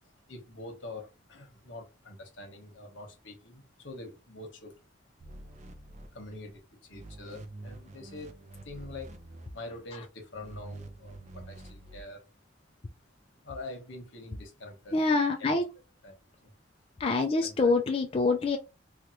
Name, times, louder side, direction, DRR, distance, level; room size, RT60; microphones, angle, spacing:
voice 1, 0.0-4.8 6.1-9.2 9.5-12.2 13.4-15.0 15.4-15.6 16.0-16.5 17.4-17.8, left 2 dB, 75° left, 1.1 m, -45 dB
sound 1, 5.2-6.6 6.9-9.8 10.3-12.0, right 2 dB, 40° right, 0.4 m, -47 dB
voice 2, 14.9-15.7 17.0-18.6, left 3 dB, 30° left, 0.3 m, -26 dB
3.3 x 2.4 x 2.8 m
head